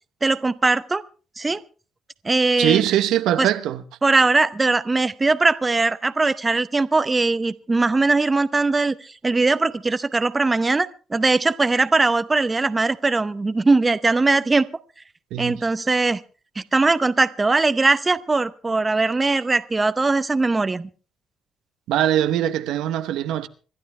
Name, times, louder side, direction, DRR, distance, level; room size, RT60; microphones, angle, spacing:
voice 1, 0.2-1.0 1.4-1.6 2.2-2.8 3.4-3.5 4.0-14.7 15.4-16.2 16.6-20.9, right 3 dB, 25° right, 0.7 m, -20 dB
voice 2, 2.6-3.8 15.3-15.6 21.9-23.5, right 11 dB, 90° right, 0.8 m, -21 dB
26.0 x 12.0 x 3.3 m
cardioid pair, 90°, 0 cm